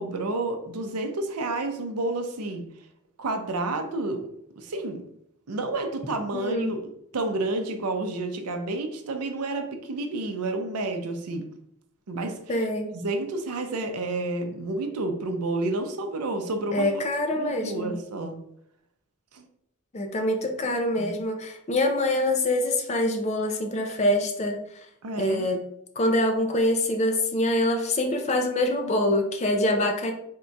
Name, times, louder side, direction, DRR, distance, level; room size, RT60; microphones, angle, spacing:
voice 1, 0.0-2.7 3.2-4.3 4.6-5.0 5.5-11.5 12.1-12.6 12.9-16.9 17.3-18.4 19.3-19.5 21.0-21.2 25.0-25.5, right 2 dB, 90° right, 6 dB, 0.6 m, -30 dB
voice 2, 6.3-6.7 12.5-12.9 16.7-18.0 19.9-24.6 25.2-25.6 26.0-30.1, left 1 dB, 30° left, 4 dB, 0.4 m, -25 dB
3.6 x 2.3 x 3.9 m, 0.74 s
head